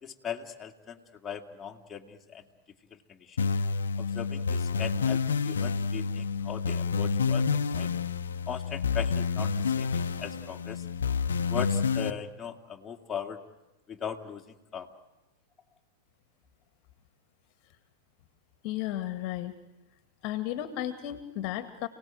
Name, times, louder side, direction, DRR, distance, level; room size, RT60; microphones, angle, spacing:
voice 1, 0.0-2.4 2.9-3.5 4.0-7.9 8.5-10.9 11.5-13.4 13.9-14.9, left 7 dB, 20° left, 1 dB, 2.6 m, -39 dB
sound 1, 3.4-12.1, left 5 dB, 80° left, 1.0 m, -29 dB
voice 2, 18.6-19.5 20.2-21.9, left 13 dB, 45° left, 10 dB, 2.0 m, -34 dB
30.0 x 18.5 x 9.1 m, 1.1 s
hypercardioid pair, 100°, 0 cm